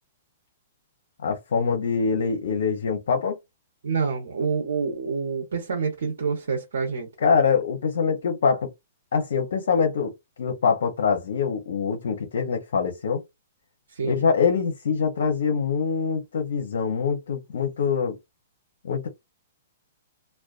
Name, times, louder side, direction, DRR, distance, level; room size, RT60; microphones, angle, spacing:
voice 1, 1.2-3.4 7.2-8.7 9.1-10.1 10.4-13.2 14.0-18.2 18.8-19.1, left 6 dB, 75° left, 0.7 m, -24 dB
voice 2, 3.8-7.1 13.9-14.2, right 5 dB, 80° right, 0.7 m, -27 dB
2.4 x 2.2 x 2.4 m
hypercardioid pair, 145°, 0 cm